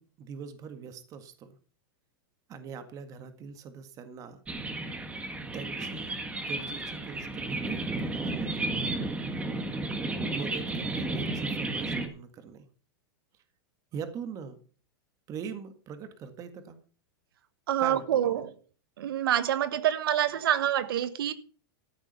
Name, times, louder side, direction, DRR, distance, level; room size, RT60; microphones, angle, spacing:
voice 1, 0.0-1.6 2.5-4.4 5.5-9.0 10.3-12.7 13.9-14.6 15.3-16.8 17.8-18.4, right 6 dB, 30° right, 9 dB, 1.7 m, -42 dB
sound 1, 4.5-12.1, right 2 dB, 10° right, 1.7 m, -33 dB
voice 2, 17.7-18.5 19.0-21.3, right 11 dB, 80° right, 14 dB, 1.4 m, -26 dB
13.5 x 8.8 x 5.6 m, 0.40 s
supercardioid pair, 150°, 12 cm